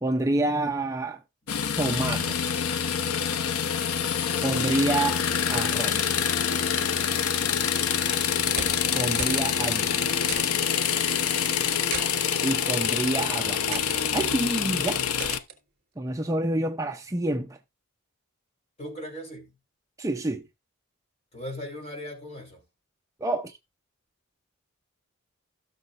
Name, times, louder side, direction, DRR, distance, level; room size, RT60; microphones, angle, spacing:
voice 1, 0.0-1.2 1.8-2.6 4.4-6.3 8.9-10.1 12.4-15.0 16.0-17.6 20.0-20.4 23.2-23.6, right 2 dB, 15° right, 0.5 m, -28 dB
sound 1, 1.5-15.4, left 8 dB, 85° left, 0.7 m, -26 dB
sound 2, 8.6-8.9 9.2-9.4 9.7-9.8 10.3-10.7 11.6-12.1 12.9-13.1 13.7-14.0 15.2-15.6, right 6 dB, 45° right, 3.3 m, -37 dB
voice 2, 18.8-19.5 21.3-22.6, equal, 30° left, 3.3 m, -38 dB
16.5 x 6.5 x 2.5 m
head